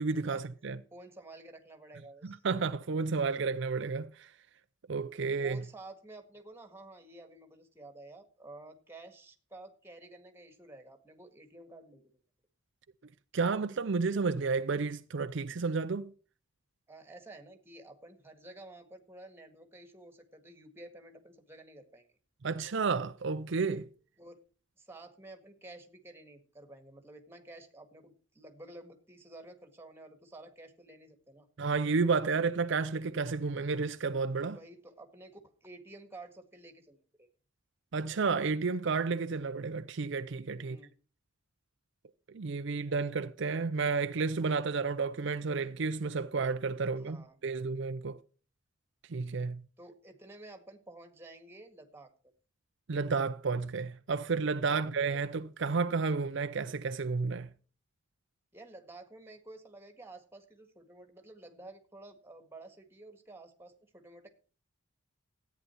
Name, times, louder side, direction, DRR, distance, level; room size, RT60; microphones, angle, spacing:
voice 1, 0.0-0.8 2.2-4.3 4.9-5.6 13.3-16.1 22.4-23.9 31.6-34.6 37.9-40.8 42.3-48.2 49.1-49.6 52.9-57.5, right 4 dB, 60° right, 0.5 m, -31 dB
voice 2, 0.9-2.4 5.4-12.1 16.9-22.1 24.2-24.4 24.8-31.5 34.4-37.3 40.6-40.9 47.0-47.4 49.8-52.1 58.5-64.3, right 2 dB, 10° right, 1.8 m, -51 dB
14.0 x 9.3 x 4.5 m
head